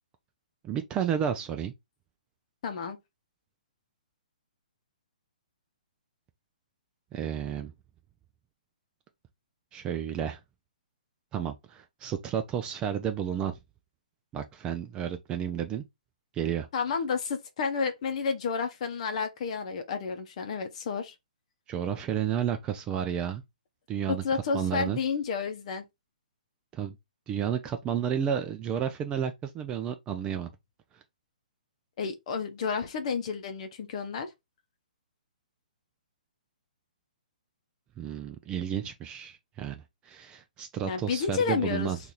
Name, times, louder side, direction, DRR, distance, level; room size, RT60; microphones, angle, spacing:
voice 1, 0.6-1.7 7.1-7.7 9.7-10.4 11.3-13.6 14.3-15.8 16.3-16.7 21.7-23.4 23.9-24.2 24.5-25.0 26.7-27.0 27.3-30.5 38.0-42.0, right 9 dB, 20° right, 0.4 m, -31 dB
voice 2, 2.6-3.0 16.7-21.1 24.1-25.8 32.0-34.3 40.8-41.9, left 5 dB, 50° left, 0.7 m, -31 dB
2.8 x 2.5 x 3.8 m
hypercardioid pair, 135°, 4 cm